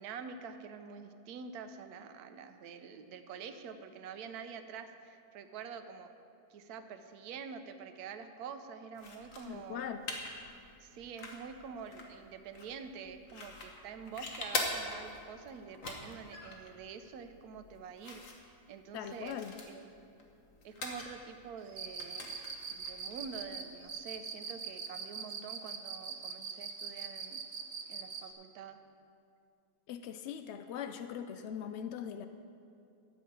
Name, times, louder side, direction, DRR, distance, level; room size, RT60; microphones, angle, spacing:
voice 1, 0.0-6.1 6.5-9.9 10.8-18.2 18.7-19.4 19.7-19.8 20.6-27.4 27.9-28.8, right 6 dB, 75° right, 8 dB, 1.2 m, -47 dB
sound 1, 8.9-24.1, left 2 dB, 55° left, 1.6 m, -44 dB
voice 2, 9.4-10.0 18.9-19.6 29.9-32.3, left 8 dB, 80° left, 8 dB, 0.6 m, -41 dB
Cricket, 21.7-28.3, right 6 dB, 50° right, 1.1 m, -41 dB
12.0 x 5.5 x 8.5 m, 2.5 s
omnidirectional pair, 1.7 m